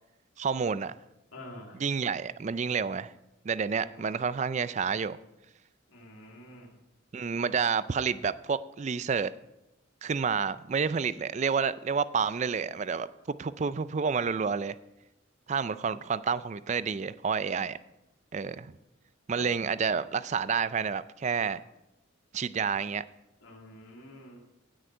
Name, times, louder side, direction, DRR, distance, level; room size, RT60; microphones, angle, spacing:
voice 1, 0.4-0.9 1.8-3.1 3.4-5.2 7.1-9.3 10.0-14.8 15.5-17.8 18.3-18.7 19.3-21.6 22.3-23.0, right 6 dB, 35° right, 0.4 m, -29 dB
voice 2, 1.3-1.8 3.7-4.2 5.9-6.7 19.4-19.5 23.4-24.4, left 1 dB, 80° left, 2.5 m, -48 dB
17.0 x 6.4 x 4.5 m
head